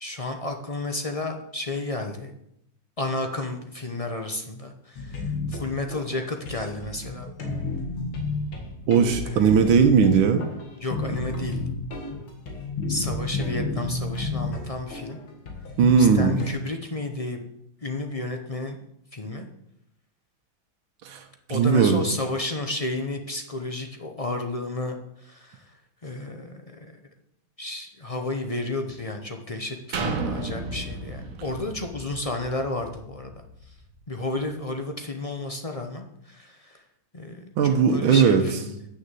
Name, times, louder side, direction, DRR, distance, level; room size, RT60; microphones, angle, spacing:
voice 1, 0.0-2.3 3.0-7.3 9.2-9.6 10.8-11.6 12.9-15.2 16.0-17.4 17.8-18.8 19.1-19.5 21.5-25.0 25.2-25.6 26.0-26.9 27.6-33.3 34.1-36.8 37.1-38.8, left 2 dB, 35° left, 4 dB, 0.5 m, -32 dB
sound 1, 5.0-16.5, left 3 dB, 90° left, 2.7 m, -31 dB
voice 2, 8.9-10.4 15.8-16.4 21.1-21.2 21.5-22.1 37.6-38.4, right 6 dB, 80° right, 6 dB, 1.7 m, -18 dB
sound 2, 29.9-33.7 34.2-34.3, right 3 dB, 50° right, 1.4 m, -33 dB
8.6 x 6.6 x 7.6 m, 0.77 s
omnidirectional pair, 2.2 m